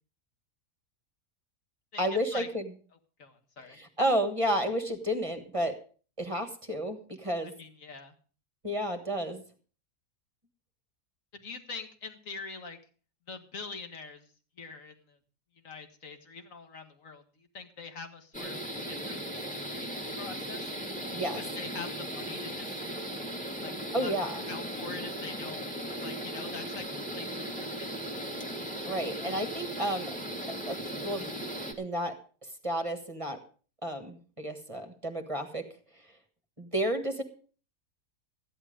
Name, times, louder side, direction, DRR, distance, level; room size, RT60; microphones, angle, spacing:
voice 1, 2.0-2.7 3.7-5.8 6.2-7.5 8.6-9.4 21.1-21.4 23.9-24.4 28.9-30.1 30.5-31.3 31.8-32.2 32.6-33.4 33.8-35.7 36.6-37.2, equal, 20° right, 6 dB, 1.5 m, -31 dB
voice 2, 3.2-3.8 7.4-8.1 11.3-12.8 13.3-15.2 15.6-19.2 19.5-20.7 21.4-22.8 23.6-23.7 24.0-24.1 24.5-25.6 26.0-27.9, left 4 dB, 55° left, 6 dB, 2.0 m, -44 dB
sound 1, 18.3-31.7, equal, 5° left, 1.9 m, -37 dB
14.5 x 11.0 x 5.2 m, 0.40 s
omnidirectional pair, 1.7 m